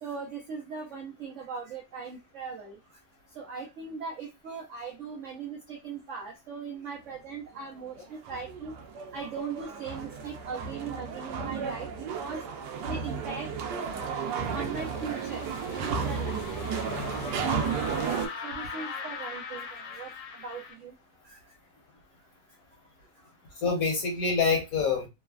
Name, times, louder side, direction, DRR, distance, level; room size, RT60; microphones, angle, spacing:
voice 1, 0.0-2.7 3.4-8.7 9.1-11.9 12.2-12.4 12.9-13.9 14.5-15.5 15.8-16.4 18.4-20.1 20.4-20.9 21.2-21.4, right 5 dB, 90° right, 0 dB, 0.6 m, -39 dB
sound 1, 8.0-18.3, right 6 dB, 75° right, 1.1 m, -33 dB
sound 2, 13.0-20.7, left 5 dB, 85° left, 1.3 m, -41 dB
voice 2, 16.9-17.4 23.6-25.1, left 5 dB, 65° left, 0 dB, 1.0 m, -27 dB
3.2 x 2.0 x 2.3 m, 0.24 s
omnidirectional pair, 2.0 m